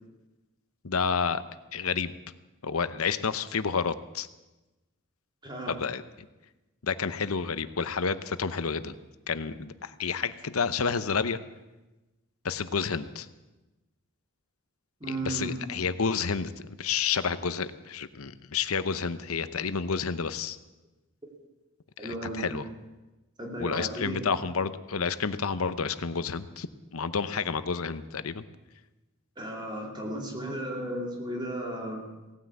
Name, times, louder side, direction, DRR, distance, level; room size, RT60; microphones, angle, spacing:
voice 1, 0.8-1.4 1.7-2.1 2.6-4.3 5.7-6.0 6.8-8.9 9.3-11.4 12.4-13.3 15.1-20.6 22.4-22.6 23.6-26.7 26.9-28.5, left 5 dB, 85° left, 13 dB, 0.8 m, -30 dB
voice 2, 5.4-5.7 15.0-15.6 22.0-22.6 23.4-24.3 29.4-32.1, right 1 dB, 20° right, 0 dB, 2.8 m, -35 dB
17.5 x 9.6 x 8.4 m, 1.1 s
head